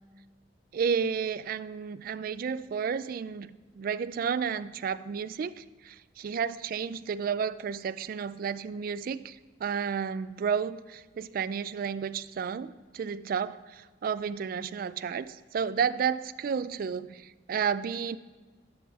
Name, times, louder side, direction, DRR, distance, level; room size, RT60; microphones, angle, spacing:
voice 1, 0.7-18.2, right 6 dB, 50° right, 16 dB, 0.3 m, -32 dB
10.0 x 5.4 x 5.3 m, 1.3 s
head